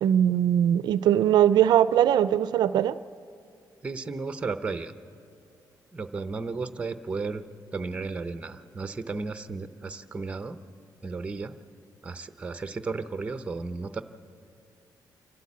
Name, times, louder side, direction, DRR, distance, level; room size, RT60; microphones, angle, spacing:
voice 1, 0.0-3.0, right 10 dB, 85° right, 0.4 m, -21 dB
voice 2, 3.8-4.9 5.9-7.5 7.7-10.6 11.0-11.6 12.0-14.0, right 4 dB, 15° right, 0.7 m, -34 dB
27.5 x 12.5 x 8.5 m
wide cardioid pair, 170°, 7 cm